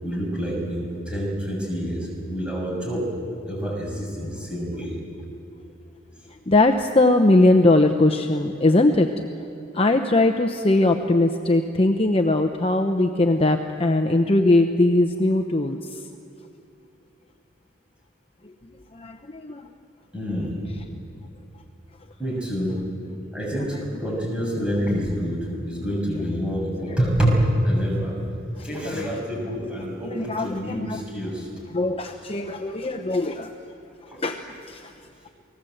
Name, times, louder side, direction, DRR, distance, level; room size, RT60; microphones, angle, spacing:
voice 1, 0.0-3.1 3.5-5.0 20.1-20.6 22.2-22.8 23.3-28.2 28.6-31.5 32.1-32.2 34.0-34.2 35.3-35.4, equal, 5° right, -3 dB, 6.7 m, -27 dB
voice 2, 6.5-9.1 9.7-15.8 18.9-19.2 19.4-19.7 28.8-29.1 30.1-31.0 31.7-33.5 34.2-34.4 34.7-34.8, left 2 dB, 30° left, 5 dB, 0.8 m, -20 dB
29.0 x 19.5 x 7.9 m, 2.5 s
head